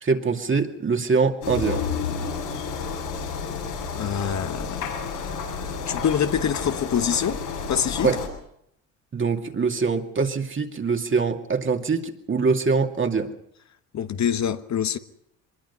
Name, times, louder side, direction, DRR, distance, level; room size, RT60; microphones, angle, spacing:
voice 1, 0.0-1.9 8.0-8.2 9.1-13.3, right 4 dB, 30° right, 2.5 m, -23 dB
sound 1, 1.4-8.3, left 5 dB, 90° left, 6.8 m, -31 dB
voice 2, 3.9-4.9 5.9-7.4 7.7-8.2 13.9-15.0, left 8 dB, 45° left, 1.3 m, -25 dB
23.5 x 21.0 x 5.6 m
hypercardioid pair, 65°, 38 cm